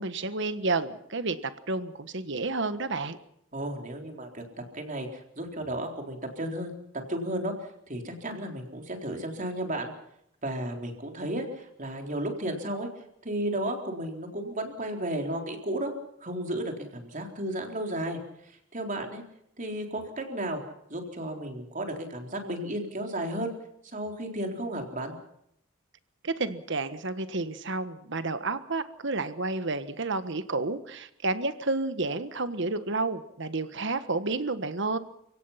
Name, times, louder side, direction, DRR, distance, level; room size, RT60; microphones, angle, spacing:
voice 1, 0.0-3.2 26.2-35.0, right 3 dB, 60° right, 11 dB, 1.5 m, -30 dB
voice 2, 3.5-4.4 4.7-7.5 7.9-9.9 10.4-12.9 13.2-15.9 16.2-18.2 18.7-19.2 19.6-20.6 20.9-23.5 23.9-25.1, right 1 dB, 40° right, 3 dB, 4.0 m, -33 dB
30.0 x 17.0 x 5.9 m, 0.74 s
head